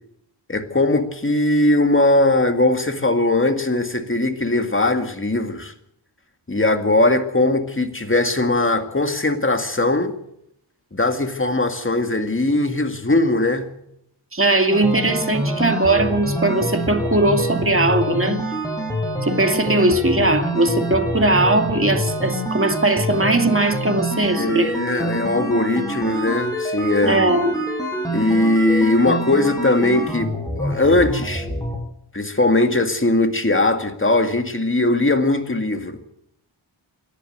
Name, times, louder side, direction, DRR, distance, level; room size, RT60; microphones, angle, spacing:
voice 1, 0.5-5.7 6.5-10.1 10.9-13.7 24.3-27.2 28.1-31.5 32.1-36.0, left 2 dB, 25° left, 2.1 m, -20 dB
voice 2, 14.3-18.4 19.2-24.7 27.1-27.6, right 2 dB, 25° right, 2.3 m, -19 dB
sound 1, 14.7-31.8, equal, 5° left, 6.6 m, -26 dB
28.5 x 11.5 x 8.0 m
wide cardioid pair, 75°, 50 cm